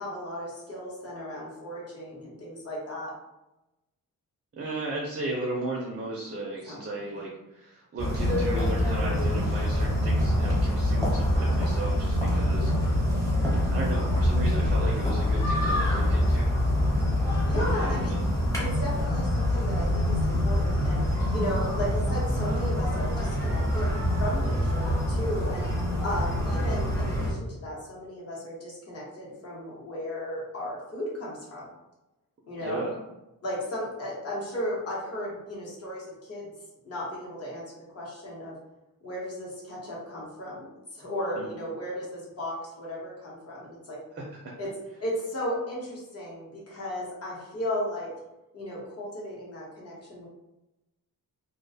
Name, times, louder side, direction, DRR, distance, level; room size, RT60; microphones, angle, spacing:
voice 1, 0.0-3.1 6.7-6.8 7.2-7.3 12.6-12.8 17.2-18.2 18.6-21.0 21.3-25.6 26.0-31.7 32.5-32.8 33.4-36.5 36.8-38.5 39.0-44.0 44.6-44.7 45.0-48.1 48.5-50.3, equal, 45° left, -5 dB, 0.9 m, -35 dB
voice 2, 4.5-13.0 13.7-16.5 17.8-18.2 26.6-26.7 32.6-33.0 41.4-41.5 44.2-44.5, right 2 dB, 35° right, -2 dB, 0.4 m, -35 dB
sound 1, 8.0-27.3, left 1 dB, 10° left, 0.7 m, -25 dB
2.4 x 2.1 x 2.6 m, 0.97 s
wide cardioid pair, 170°, 34 cm